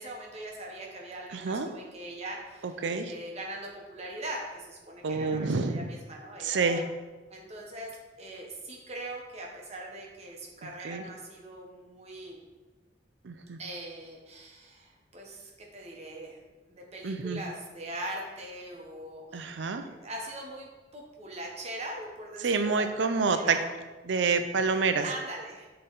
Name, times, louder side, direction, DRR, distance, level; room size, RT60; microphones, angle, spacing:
voice 1, 0.0-6.9 7.3-7.9 8.2-12.4 13.6-16.4 16.7-23.6 24.7-25.7, right 1 dB, 35° right, -1 dB, 1.1 m, -41 dB
voice 2, 1.3-1.7 2.8-3.1 5.0-5.9 6.4-6.8 10.8-11.0 13.2-13.6 17.0-17.4 19.3-19.8 22.4-23.6 24.1-25.1, right 4 dB, 85° right, 8 dB, 0.5 m, -27 dB
7.7 x 3.3 x 4.0 m, 1.2 s
head